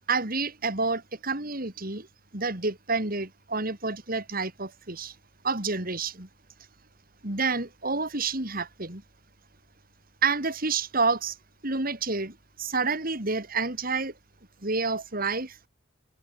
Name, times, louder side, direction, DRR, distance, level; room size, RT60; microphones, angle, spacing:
voice 1, 0.1-2.1 2.3-5.2 5.4-6.3 7.2-9.0 10.2-11.4 11.6-14.1 14.6-15.6, right 4 dB, 45° right, 3.7 m, -29 dB
open air
head